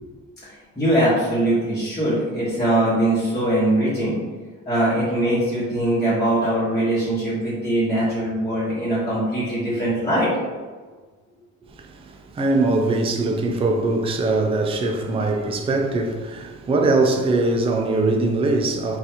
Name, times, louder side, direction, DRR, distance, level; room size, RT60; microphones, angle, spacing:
voice 1, 0.4-4.2 4.7-10.3, right 1 dB, 10° left, 1.2 m, -21 dB
voice 2, 11.7-19.0, right 2 dB, 20° right, 0.4 m, -22 dB
3.9 x 2.6 x 2.8 m
cardioid pair, 90°, 30 cm